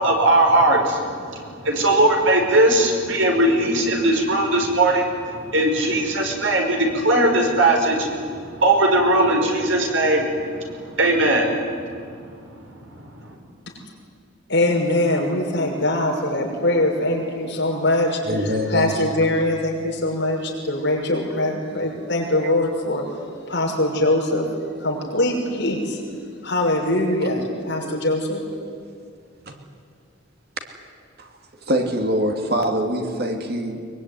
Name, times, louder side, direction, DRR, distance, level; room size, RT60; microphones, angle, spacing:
voice 1, 0.0-11.7 12.9-13.0, right 1 dB, 70° right, 2 dB, 5.4 m, -19 dB
voice 2, 14.5-23.1 23.5-24.5 24.8-26.0 26.4-28.4, left 1 dB, 55° left, 0 dB, 6.1 m, -22 dB
voice 3, 18.3-18.9 27.8-28.0 28.6-28.8 29.5-29.6 31.2-31.3 31.7-33.9, equal, 50° right, 4 dB, 2.6 m, -24 dB
23.0 x 23.0 x 9.8 m, 2.2 s
head